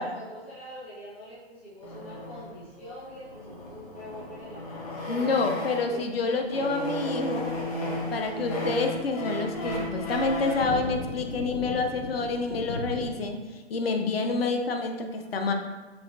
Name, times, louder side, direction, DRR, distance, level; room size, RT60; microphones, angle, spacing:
voice 1, 0.0-6.0 6.5-7.8 8.0-8.9, equal, 10° left, -11 dB, 0.4 m, -45 dB
sound 1, 1.8-6.0 6.4-10.8, equal, 35° left, 0.9 m, -35 dB
sound 2, 4.4-4.5 6.4-13.2, left 1 dB, 80° left, 1.1 m, -39 dB
voice 2, 5.1-7.5 8.1-13.4 13.7-15.5, left 3 dB, 60° left, 4 dB, 0.6 m, -28 dB
5.6 x 3.0 x 2.6 m, 1.3 s
hypercardioid pair, 160°, 34 cm